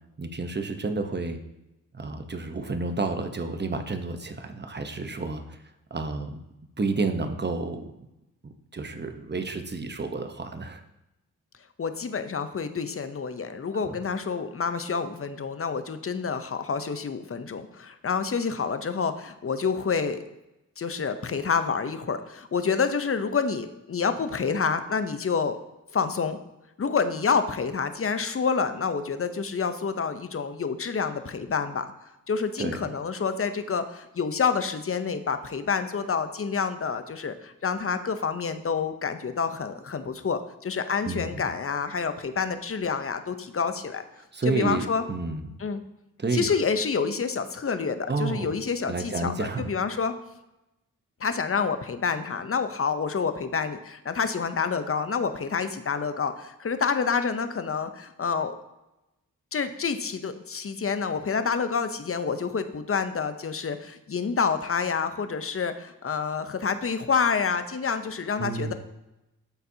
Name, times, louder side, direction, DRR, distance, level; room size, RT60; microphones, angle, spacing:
voice 1, 0.2-1.4 1.9-5.4 5.9-6.4 6.8-8.1 8.4-10.8 13.8-13.9 32.6-32.8 41.0-41.4 44.3-45.5 46.2-46.5 48.1-48.5 48.9-49.7 68.4-68.7, right 3 dB, 30° right, 7 dB, 0.9 m, -30 dB
voice 2, 11.8-20.2 20.8-25.6 25.9-26.4 26.8-31.8 32.3-44.0 44.5-45.0 45.6-45.8 46.3-50.1 51.2-58.5 59.5-68.7, left 5 dB, 40° left, 10 dB, 0.7 m, -28 dB
12.0 x 4.1 x 2.8 m, 0.95 s
cardioid pair, 50°, 34 cm